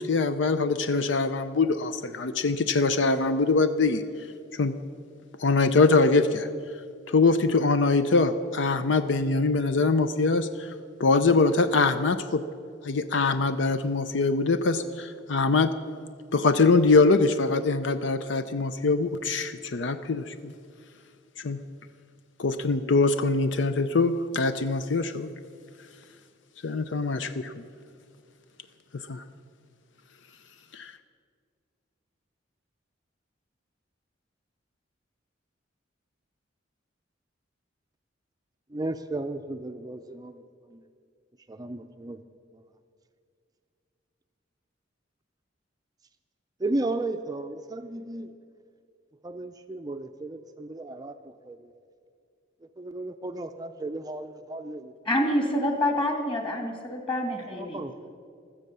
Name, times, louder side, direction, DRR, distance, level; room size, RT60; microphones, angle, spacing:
voice 1, 0.0-4.0 4.5-4.7 5.4-6.5 7.1-10.7 11.0-12.4 12.8-15.7 16.3-20.5 21.4-21.6 22.4-25.3 26.6-27.6 29.1-29.2 30.7-30.9, left 3 dB, 70° left, 11 dB, 0.6 m, -23 dB
voice 2, 38.7-40.8 41.5-42.2 42.5-42.6 46.6-48.4 49.2-51.7 52.6-54.9 55.3-55.4 55.6-55.8 57.5-58.1, right 2 dB, 20° right, 7 dB, 0.5 m, -35 dB
voice 3, 55.1-57.8, left 1 dB, 25° left, 3 dB, 2.4 m, -27 dB
16.0 x 13.0 x 6.8 m, 2.3 s
head